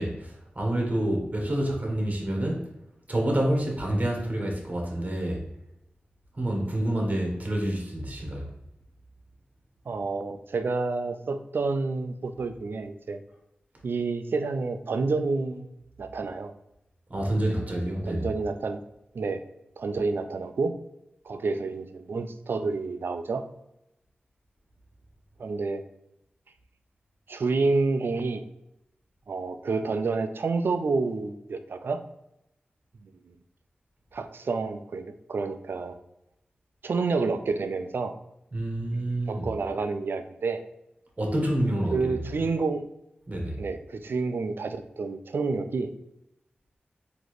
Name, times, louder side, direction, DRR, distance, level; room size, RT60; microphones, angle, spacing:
voice 1, 0.0-2.7 3.1-5.4 6.3-8.5 17.1-18.3 38.5-39.5 41.2-42.0 43.3-43.6, right 1 dB, 40° right, 0 dB, 1.2 m, -28 dB
voice 2, 9.9-13.2 13.8-15.7 16.0-16.5 18.1-18.8 19.1-19.4 19.8-20.7 21.3-23.4 25.4-25.8 27.3-28.4 29.3-32.0 33.0-33.3 34.1-36.0 36.8-38.1 38.9-40.6 41.9-42.8 43.6-45.9, right 4 dB, 75° right, 9 dB, 0.4 m, -29 dB
4.0 x 2.9 x 3.1 m, 0.86 s
cardioid pair, 45°, 4 cm